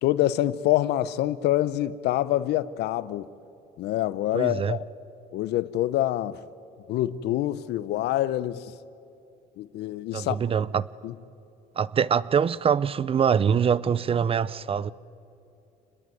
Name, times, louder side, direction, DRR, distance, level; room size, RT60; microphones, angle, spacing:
voice 1, 0.0-3.3 3.8-4.8 5.3-6.4 6.9-8.7 9.6-10.4 11.0-11.1, left 14 dB, 80° left, 0.8 m, -26 dB
voice 2, 4.3-4.8 10.1-10.9 11.8-14.9, right 7 dB, 35° right, 0.6 m, -24 dB
27.0 x 20.5 x 9.2 m
cardioid pair, 110°, 17 cm